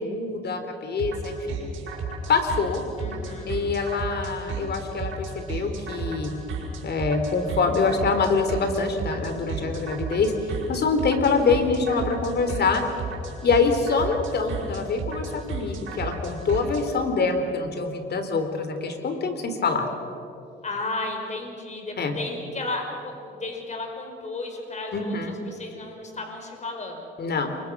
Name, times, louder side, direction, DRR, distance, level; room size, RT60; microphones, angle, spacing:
voice 1, 0.0-1.6 2.3-2.8 3.5-6.3 6.8-10.3 10.7-12.8 13.4-19.9 22.0-22.2 24.9-25.4 27.2-27.5, left 4 dB, 55° left, 7 dB, 3.5 m, -25 dB
sound 1, 1.0-16.8, right 5 dB, 85° right, 5.6 m, -33 dB
voice 2, 3.0-3.5 20.6-27.1, left 2 dB, 35° left, 3 dB, 5.3 m, -34 dB
28.0 x 24.0 x 6.2 m, 2.8 s
cardioid pair, 90°, 20 cm